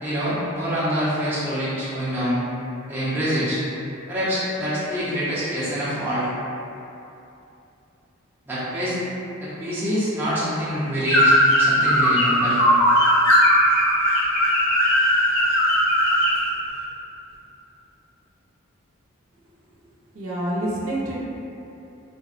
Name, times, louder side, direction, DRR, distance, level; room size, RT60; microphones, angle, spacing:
voice 1, 0.0-2.4 2.9-3.6 4.1-6.3 8.5-9.0 9.4-12.6, equal, 10° right, -12 dB, 0.5 m, -25 dB
sound 1, 11.1-16.4, equal, 80° left, 0.6 m, -18 dB
voice 2, 20.1-21.2, right 1 dB, 75° right, -6 dB, 0.6 m, -27 dB
3.4 x 2.0 x 2.5 m, 2.8 s
head